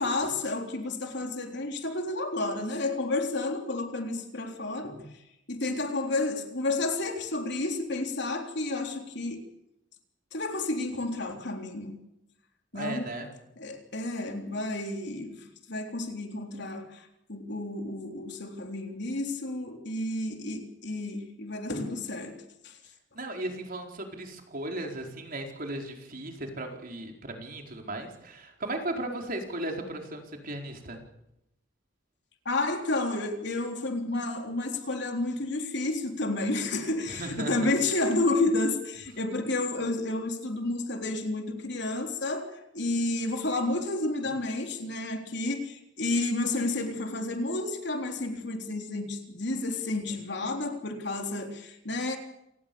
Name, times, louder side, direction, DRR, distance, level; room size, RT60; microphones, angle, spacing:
voice 1, 0.0-5.1 5.5-9.4 10.3-12.1 12.7-13.0 13.6-22.8 32.5-52.2, left 2 dB, 65° left, 3.7 m, -31 dB
voice 2, 12.7-13.3 23.1-31.0 37.1-37.7, right 1 dB, 50° right, 4.6 m, -36 dB
28.0 x 19.0 x 7.1 m
head